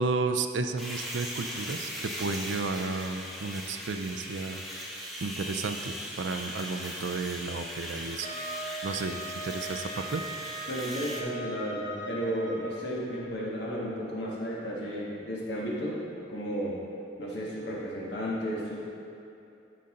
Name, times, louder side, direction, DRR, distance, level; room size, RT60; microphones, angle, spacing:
voice 1, 0.0-4.6 4.9-8.3 8.8-10.2, right 3 dB, 90° right, 8 dB, 0.5 m, -33 dB
sound 1, 0.8-11.2, equal, ahead, 0.9 m, -39 dB
Wind instrument woodwind instrument, 8.2-12.9, right 1 dB, 25° left, 1.0 m, -39 dB
voice 2, 10.7-16.0 16.3-16.7 17.2-18.8, equal, 65° left, -5 dB, 1.7 m, -33 dB
10.5 x 5.7 x 3.8 m, 2.7 s
head